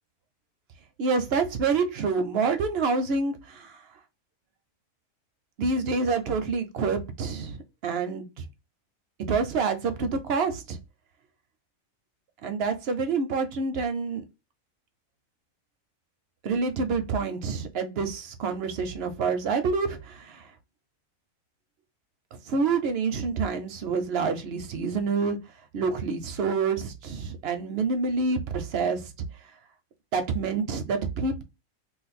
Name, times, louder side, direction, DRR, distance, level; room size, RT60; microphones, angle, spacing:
voice 1, 1.0-3.8 5.6-8.4 9.3-10.8 12.4-14.2 16.4-20.5 22.5-25.4 25.7-29.1 30.1-31.4, right 4 dB, 60° right, 0.7 m, -27 dB
2.5 x 2.5 x 4.0 m
omnidirectional pair, 1.4 m